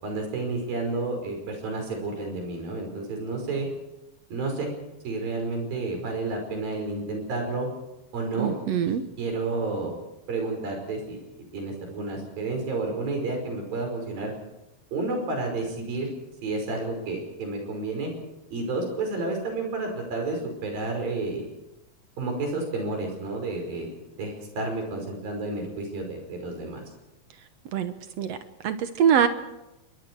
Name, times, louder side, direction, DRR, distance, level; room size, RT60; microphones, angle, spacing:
voice 1, 0.0-3.7 4.3-4.7 5.0-7.7 8.1-8.5 8.9-10.0 10.3-11.2 11.5-14.3 14.9-16.1 16.4-18.1 18.5-21.4 22.2-23.9 24.2-26.8, right 3 dB, 80° right, 3 dB, 7.0 m, -30 dB
voice 2, 8.4-9.0 27.7-28.4 28.6-29.3, right 8 dB, 65° right, 9 dB, 1.7 m, -23 dB
26.5 x 22.5 x 4.7 m, 0.93 s
omnidirectional pair, 4.0 m